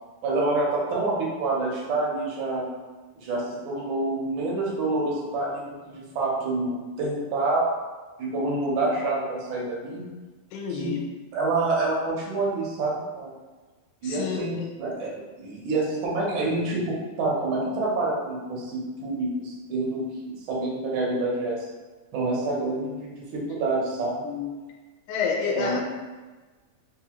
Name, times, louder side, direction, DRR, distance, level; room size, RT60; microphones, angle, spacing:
voice 1, 0.2-2.7 3.1-7.6 8.2-10.0 10.7-10.9 11.3-13.3 14.0-21.7 22.1-24.2 25.5-25.8, right 2 dB, 80° right, -4 dB, 1.1 m, -27 dB
voice 2, 10.5-11.0 14.0-14.7 24.2-24.5 25.1-25.8, left 5 dB, 90° left, -1 dB, 2.0 m, -29 dB
4.6 x 2.4 x 2.9 m, 1.3 s
omnidirectional pair, 3.4 m